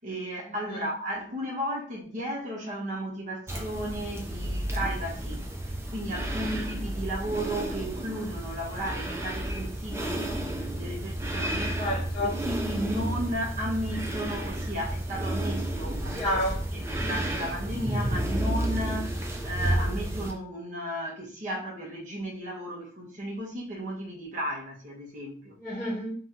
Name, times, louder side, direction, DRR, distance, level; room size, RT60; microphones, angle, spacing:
voice 1, 0.0-10.3 10.6-11.9 12.2-16.4 16.7-25.6, equal, 40° right, 1.3 m, -34 dB
sound 1, 3.5-20.3, right 1 dB, 15° right, 0.6 m, -31 dB
voice 2, 11.8-12.3 16.2-16.9 25.6-26.1, left 1 dB, 10° left, 1.4 m, -30 dB
3.7 x 2.9 x 3.7 m
head